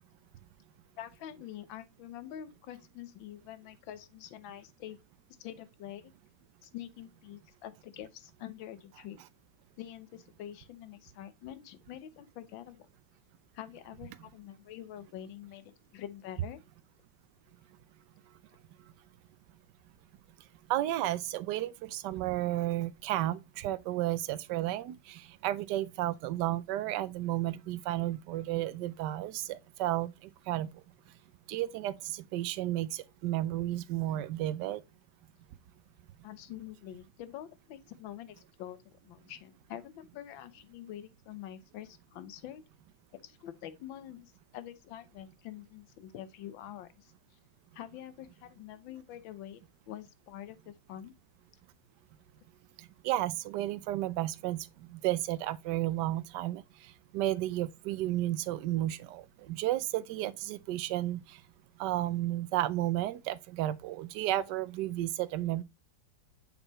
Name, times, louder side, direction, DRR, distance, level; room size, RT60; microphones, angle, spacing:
voice 1, 1.0-5.0 5.4-6.1 6.6-9.2 9.8-12.9 13.5-16.6 36.2-42.6 43.2-47.1 47.7-49.6 49.9-51.1, left 11 dB, 80° left, 1.5 m, -46 dB
voice 2, 20.7-30.7 31.5-34.8 53.0-56.6 57.1-61.4 61.8-65.6, right 14 dB, 70° right, 1.1 m, -32 dB
6.9 x 5.4 x 2.9 m
omnidirectional pair, 2.1 m